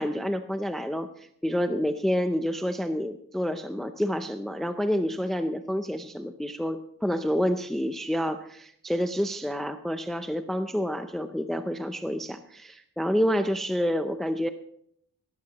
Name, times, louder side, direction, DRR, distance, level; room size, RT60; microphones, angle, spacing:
voice 1, 0.0-14.5, equal, ahead, 8 dB, 0.6 m, -28 dB
17.5 x 14.0 x 3.0 m, 0.69 s
wide cardioid pair, 125°, 36 cm